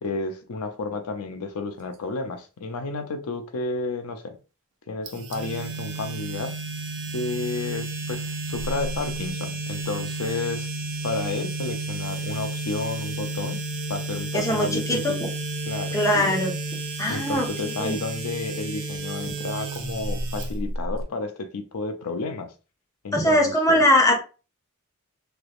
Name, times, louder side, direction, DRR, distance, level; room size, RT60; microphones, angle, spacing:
voice 1, 0.0-4.4 4.9-6.5 7.1-10.7 11.0-13.6 13.9-15.2 15.7-16.3 17.1-22.5 23.0-23.8, left 3 dB, 85° left, 0.5 m, -31 dB
sound 1, 5.1-21.0, right 2 dB, 55° right, 0.7 m, -32 dB
voice 2, 14.3-15.1 15.9-16.5 17.0-17.5 17.8-18.0 23.1-24.2, equal, 15° left, 0.7 m, -21 dB
3.3 x 2.9 x 2.4 m
head